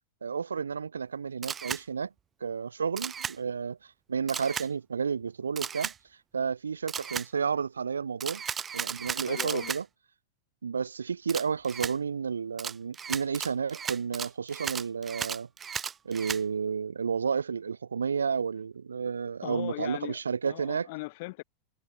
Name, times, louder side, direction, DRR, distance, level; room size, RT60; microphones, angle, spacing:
voice 1, 0.2-2.1 2.4-3.8 4.1-5.9 6.3-8.4 8.7-9.8 10.6-15.5 16.0-20.9, right 6 dB, 70° right, 1.7 m, -31 dB
Camera, 1.4-1.8 3.0-3.4 4.3-4.7 5.6-6.0 6.9-7.3 8.2-9.8 11.3-11.9 12.6-16.4, right 7 dB, 20° right, 2.3 m, -35 dB
voice 2, 9.3-9.7 19.4-20.2 20.5-21.4, left 24 dB, 50° left, 4.0 m, -38 dB
figure-of-eight pair, 90°, 0 cm